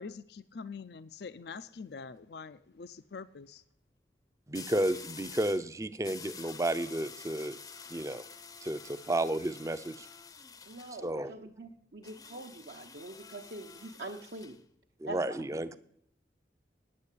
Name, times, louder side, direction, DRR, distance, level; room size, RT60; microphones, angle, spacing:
voice 1, 0.0-3.6, left 5 dB, 65° left, 15 dB, 0.5 m, -45 dB
sound 1, 1.4-1.7 4.5-5.7 6.0-11.0 12.0-14.6, left 5 dB, 20° left, 0.6 m, -49 dB
voice 2, 4.5-7.6 7.9-8.2 8.6-10.1 11.0-11.3 15.0-15.8, right 1 dB, 15° right, 13 dB, 0.5 m, -32 dB
voice 3, 10.7-14.6 15.0-15.8, right 2 dB, 65° right, 1 dB, 0.9 m, -44 dB
9.7 x 8.6 x 8.3 m, 0.68 s
head